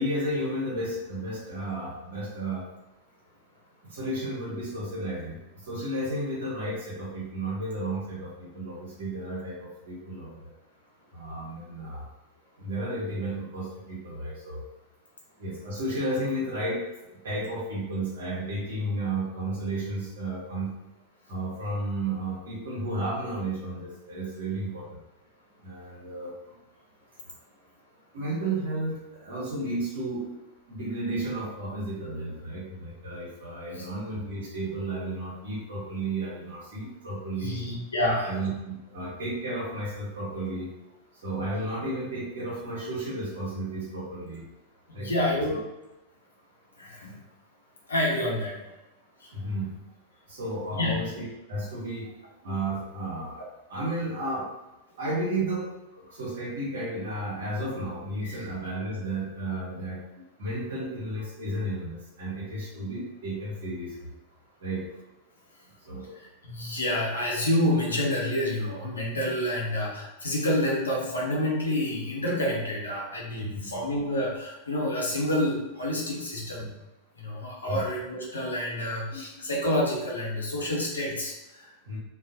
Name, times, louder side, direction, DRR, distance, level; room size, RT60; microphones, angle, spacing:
voice 1, 0.0-2.6 3.8-10.5 11.1-12.1 12.6-14.6 15.4-16.8 17.1-20.7 21.3-25.0 25.6-26.3 28.1-30.2 30.7-37.6 38.2-40.7 41.1-44.5 44.9-45.1 45.5-45.6 49.3-49.8 50.3-52.1 52.4-54.5 55.0-55.6 55.9-60.0 60.4-64.1 64.6-64.8 65.8-66.1 73.5-73.6 77.6-77.8 79.1-79.4 81.9-82.0, right 1 dB, 65° right, -5 dB, 0.9 m, -33 dB
voice 2, 37.4-38.3 44.9-45.5 46.8-47.2 47.9-48.7 49.2-49.3 50.8-51.0 58.2-58.4 66.1-76.8 77.2-81.7, left 1 dB, 75° left, -4 dB, 0.7 m, -28 dB
2.3 x 2.0 x 2.6 m, 0.97 s
figure-of-eight pair, 90°, 0 cm